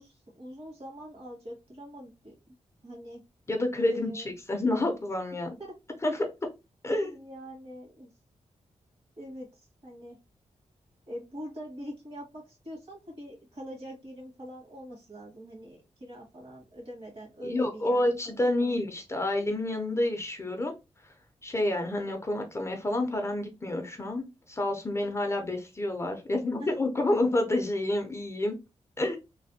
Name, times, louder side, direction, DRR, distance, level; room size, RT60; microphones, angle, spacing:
voice 1, 0.0-2.5 2.8-3.2 3.9-4.3 5.6-5.7 7.0-8.1 9.2-10.2 11.1-18.7 26.5-26.7, equal, 50° right, -2 dB, 1.8 m, -43 dB
voice 2, 3.5-5.5 6.0-6.2 6.8-7.2 17.4-20.7 21.4-28.5 29.0-29.2, left 1 dB, 25° left, 3 dB, 0.5 m, -29 dB
3.2 x 2.1 x 2.6 m, 0.26 s
wide cardioid pair, 145°, 12 cm